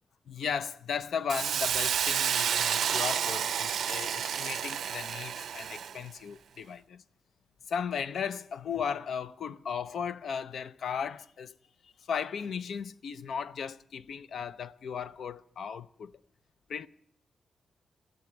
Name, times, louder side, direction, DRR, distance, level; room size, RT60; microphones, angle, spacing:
voice 1, 0.3-7.0 7.7-11.5 12.1-16.1 16.7-16.9, left 7 dB, 70° left, 0.5 m, -36 dB
Hiss, 1.3-6.0, right 8 dB, 80° right, 0.5 m, -30 dB
14.0 x 8.0 x 8.6 m
wide cardioid pair, 150°, 0 cm